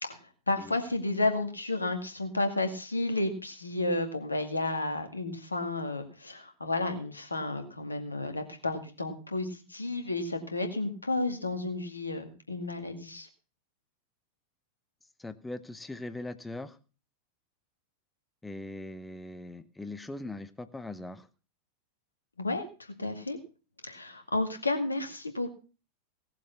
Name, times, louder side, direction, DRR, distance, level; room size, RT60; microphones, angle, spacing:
voice 1, 0.0-13.3 22.4-23.4 23.8-25.5, left 2 dB, 80° left, 6 dB, 2.1 m, -32 dB
voice 2, 15.2-16.8 18.4-21.3, left 2 dB, 10° left, 12 dB, 0.9 m, -40 dB
18.0 x 7.5 x 5.7 m, 0.35 s
figure-of-eight pair, 90°, 0 cm